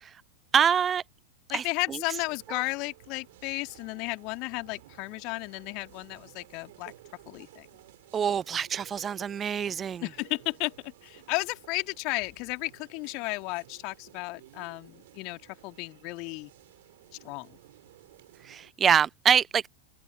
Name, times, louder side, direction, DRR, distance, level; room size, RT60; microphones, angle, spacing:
voice 1, 0.5-1.0 1.5-1.6 8.1-10.0 18.4-19.6, right 8 dB, 20° right, 0.4 m, -25 dB
voice 2, 1.5-6.9 7.3-7.7 10.0-16.5 17.2-17.6, left 27 dB, 45° left, 2.3 m, -34 dB
sound 1, 2.1-18.7, right 16 dB, 55° right, 5.6 m, -55 dB
open air
figure-of-eight pair, 90°, 0 cm